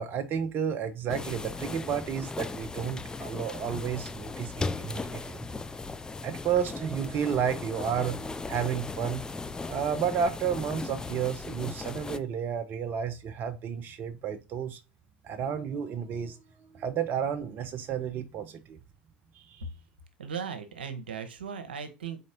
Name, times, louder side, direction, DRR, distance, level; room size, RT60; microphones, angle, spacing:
voice 1, 0.0-5.4 6.2-9.2 9.7-14.8 15.2-16.4 16.7-18.8 19.3-19.6, right 8 dB, 40° right, 0.5 m, -31 dB
sound 1, 1.1-12.2, left 3 dB, 15° left, 0.3 m, -37 dB
voice 2, 20.2-22.2, right 7 dB, 80° right, 0.8 m, -37 dB
4.2 x 4.0 x 2.6 m
figure-of-eight pair, 75°, 5 cm